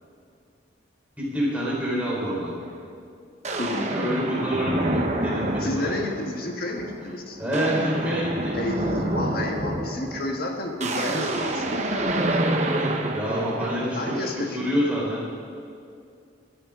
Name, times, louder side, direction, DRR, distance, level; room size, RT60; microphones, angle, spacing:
voice 1, 1.2-2.5 3.9-5.9 7.4-8.6 12.8-14.2 14.5-15.2, equal, 10° right, -7 dB, 4.1 m, -27 dB
sound 1, 2.6-2.7 3.4-6.3 6.8-7.1 7.3-14.5, right 1 dB, 35° right, 1.0 m, -28 dB
voice 2, 3.6-3.9 5.6-7.4 8.5-12.5 13.9-14.9, left 2 dB, 55° left, 2 dB, 1.6 m, -31 dB
21.0 x 12.0 x 3.8 m, 2.4 s
head